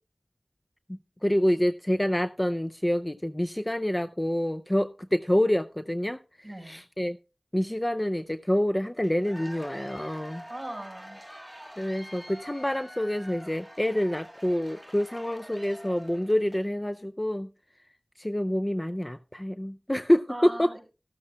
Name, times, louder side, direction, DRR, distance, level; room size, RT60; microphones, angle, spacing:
voice 1, 0.9-7.2 7.5-10.4 11.8-17.5 18.2-20.7, equal, 20° left, 10 dB, 0.5 m, -27 dB
voice 2, 6.4-6.8 10.5-11.2 20.3-20.8, right 1 dB, 25° right, 2 dB, 4.8 m, -39 dB
Cheering / Applause / Crowd, 9.0-16.7, equal, 5° left, 2.0 m, -46 dB
14.0 x 12.5 x 2.2 m, 0.31 s
wide cardioid pair, 50°, 0 cm